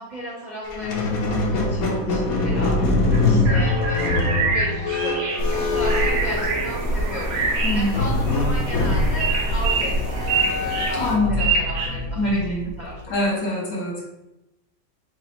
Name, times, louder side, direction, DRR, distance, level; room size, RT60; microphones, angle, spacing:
voice 1, 0.0-13.4, equal, 35° right, -5 dB, 0.8 m, -35 dB
Squeak, 0.6-7.0 7.9-13.1, left 2 dB, 65° left, 1.1 m, -24 dB
sound 1, 3.1-11.9, right 4 dB, 90° right, 1.6 m, -27 dB
voice 2, 3.2-3.6 7.6-8.0 10.9-11.5 12.2-12.7 13.1-14.0, left 1 dB, 80° left, -3 dB, 2.2 m, -24 dB
sound 2, 5.4-11.2, equal, 65° right, 1.6 m, -26 dB
5.0 x 3.6 x 2.8 m, 0.92 s
omnidirectional pair, 1.9 m